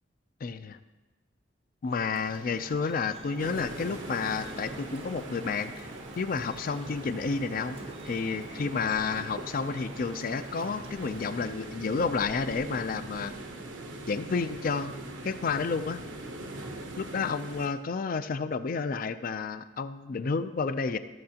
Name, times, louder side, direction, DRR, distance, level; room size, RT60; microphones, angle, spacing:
voice 1, 0.4-0.8 1.8-5.9 6.2-7.8 8.0-13.3 14.1-16.0 17.0-21.0, left 5 dB, 50° left, 11 dB, 0.4 m, -31 dB
Drip, 1.9-11.3, right 2 dB, 30° right, 0.5 m, -48 dB
sound 1, 3.4-17.7, right 2 dB, 80° right, 1.0 m, -42 dB
14.0 x 6.5 x 2.9 m, 1.2 s
head